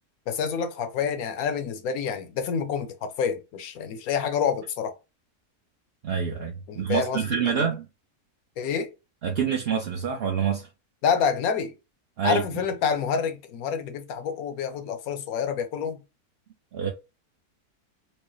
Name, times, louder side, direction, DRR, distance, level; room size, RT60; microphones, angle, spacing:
voice 1, 0.3-4.9 6.7-7.6 8.6-8.9 11.0-11.7 12.2-16.0, left 6 dB, 75° left, 1.1 m, -28 dB
voice 2, 6.0-7.9 9.2-10.7 12.2-12.4 16.7-16.9, right 7 dB, 60° right, 0.6 m, -26 dB
4.6 x 2.1 x 3.0 m
omnidirectional pair, 1.6 m